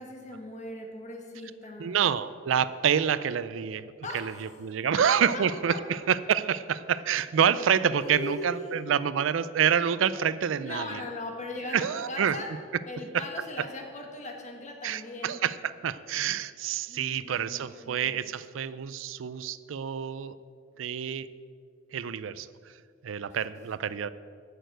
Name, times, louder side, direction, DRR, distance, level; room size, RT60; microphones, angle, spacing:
voice 1, 0.0-2.0 4.0-4.5 4.9-5.1 5.3-5.8 7.4-7.6 8.0-8.9 10.6-12.5 12.9-15.4 16.9-18.3, left 2 dB, 35° left, 2 dB, 1.5 m, -39 dB
voice 2, 1.8-11.0 11.7-12.4 14.8-20.4 20.8-21.3 21.9-22.5 23.0-24.1, right 8 dB, 80° right, 16 dB, 0.4 m, -27 dB
9.1 x 6.7 x 7.7 m, 2.1 s
head